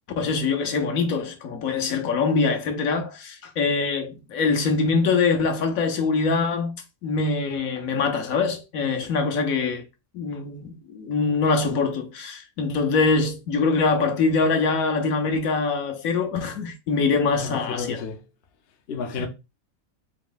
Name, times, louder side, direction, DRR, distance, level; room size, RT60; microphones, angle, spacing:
voice 1, 0.2-6.8 7.0-9.8 10.1-18.0 19.2-19.3, left 4 dB, 75° left, 1.3 m, -24 dB
voice 2, 17.4-18.2 18.9-19.3, left 5 dB, 55° left, 0.8 m, -31 dB
4.5 x 3.0 x 3.9 m
omnidirectional pair, 1.5 m